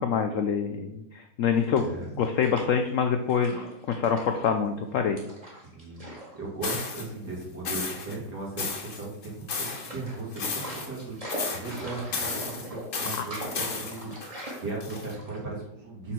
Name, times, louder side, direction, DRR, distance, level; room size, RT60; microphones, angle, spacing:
voice 1, 0.0-1.9 2.2-5.2, left 7 dB, 70° left, 6 dB, 0.7 m, -26 dB
sound 1, 1.6-2.9 3.3-4.5 5.2-6.4 6.6-6.8 7.7-8.2 8.6-9.3 9.7-15.6, equal, 20° right, 1.7 m, -41 dB
voice 2, 1.8-2.1 5.7-14.3 14.6-16.1, right 2 dB, 60° right, -5 dB, 3.0 m, -37 dB
sound 2, 6.6-7.0 7.6-8.1 8.6-9.9 10.3-11.0 11.3-11.8 12.1-15.1, left 4 dB, 55° left, 1.5 m, -33 dB
5.6 x 4.2 x 6.0 m, 0.82 s
omnidirectional pair, 1.9 m